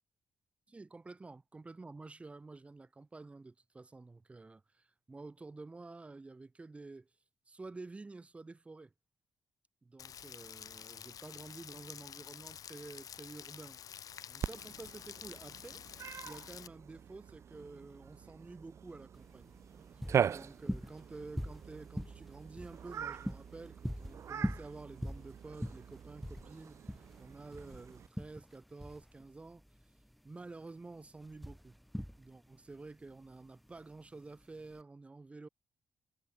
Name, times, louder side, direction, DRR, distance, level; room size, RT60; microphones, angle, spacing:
voice 1, 0.7-7.1 7.5-8.9 9.8-13.8 14.3-19.5 20.0-29.6 30.2-31.7 32.2-35.5, right 3 dB, 15° right, 2.0 m, -50 dB
Rain, 10.0-16.7, left 9 dB, 55° left, 1.3 m, -49 dB
Cat, 14.4-28.1, right 8 dB, 40° right, 0.4 m, -41 dB
sound 1, 19.1-34.8, equal, ahead, 0.6 m, -43 dB
wide cardioid pair, 175°, 7 cm